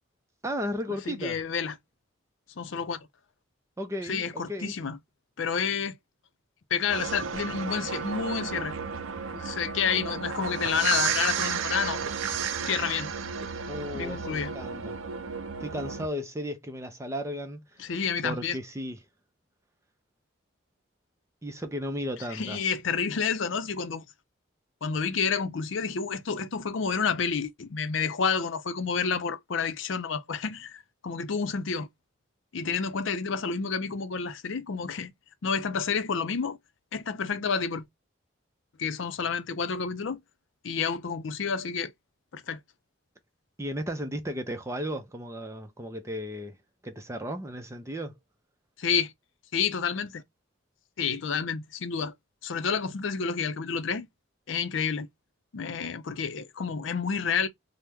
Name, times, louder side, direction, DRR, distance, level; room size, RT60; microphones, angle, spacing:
voice 1, 0.4-1.4 3.8-4.7 13.7-15.0 15.6-17.8 18.2-19.0 21.4-22.6 43.6-46.6 46.8-48.2, equal, 15° right, 0.5 m, -35 dB
voice 2, 1.1-1.7 2.6-3.1 4.1-5.0 5.4-6.0 6.7-8.7 9.3-12.0 12.6-13.1 13.9-14.5 17.8-18.6 22.3-24.0 24.8-31.9 32.5-35.1 35.4-36.6 36.9-37.8 38.8-40.2 40.6-41.9 42.3-42.6 48.8-49.1 49.5-50.2 51.0-52.1 52.4-54.1 54.5-55.1 55.5-57.5, left 6 dB, 70° left, 0.5 m, -29 dB
sound 1, 6.9-16.1, right 6 dB, 80° right, 0.4 m, -33 dB
2.9 x 2.1 x 3.4 m
head